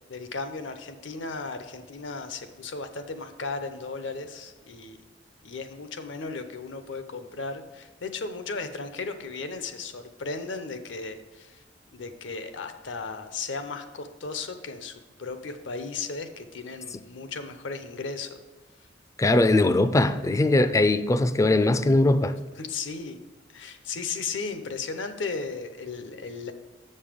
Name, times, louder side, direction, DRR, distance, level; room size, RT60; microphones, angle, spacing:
voice 1, 0.1-5.0 5.4-11.6 11.9-18.4 22.6-23.2 23.5-26.5, left 4 dB, 75° left, 0.7 m, -35 dB
voice 2, 19.2-22.4, left 2 dB, 15° left, 0.3 m, -20 dB
7.6 x 5.4 x 5.1 m
head